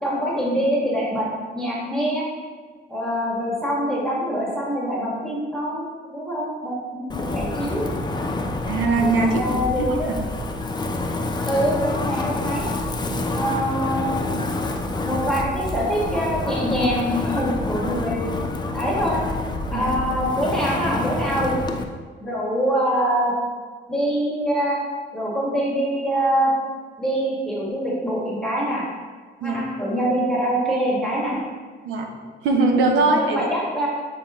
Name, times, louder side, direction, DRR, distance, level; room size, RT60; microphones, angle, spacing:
voice 1, 0.0-1.3 1.5-2.3 2.9-7.8 9.2-10.1 11.5-12.7 13.3-14.6 14.9-18.3 18.7-19.2 19.7-21.6 22.2-23.3 23.9-24.8 25.1-26.5 27.0-28.8 29.4-31.3 33.0-33.9, equal, ahead, -6 dB, 1.7 m, -24 dB
Wind, 7.1-21.8, left 2 dB, 20° left, 0.6 m, -27 dB
voice 2, 8.7-10.0 13.1-13.2 19.7-19.9 29.4-29.6 31.8-32.0 32.4-33.5, right 3 dB, 90° right, 3 dB, 0.8 m, -21 dB
8.9 x 4.0 x 3.1 m, 1.5 s
cardioid pair, 90°, 20 cm